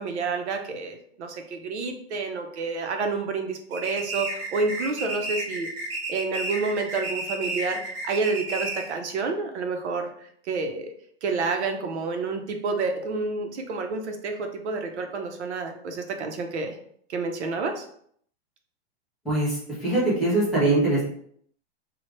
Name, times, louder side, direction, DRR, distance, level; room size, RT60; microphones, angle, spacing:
voice 1, 0.0-5.7 6.1-10.9 11.2-16.8 17.1-17.9, right 4 dB, 80° right, 5 dB, 0.9 m, -29 dB
sound 1, 3.7-9.0, right 2 dB, 55° right, 1.2 m, -32 dB
voice 2, 19.2-21.0, right 2 dB, ahead, -11 dB, 0.3 m, -22 dB
4.3 x 2.4 x 3.2 m, 0.63 s
supercardioid pair, 165°, 33 cm